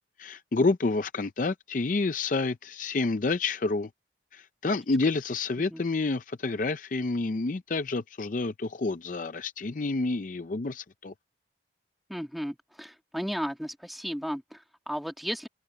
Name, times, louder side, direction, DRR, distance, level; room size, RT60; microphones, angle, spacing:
voice 1, 0.2-3.9 4.3-11.1, left 3 dB, 45° left, 0.5 m, -29 dB
voice 2, 12.1-15.5, equal, ahead, 2.1 m, -35 dB
head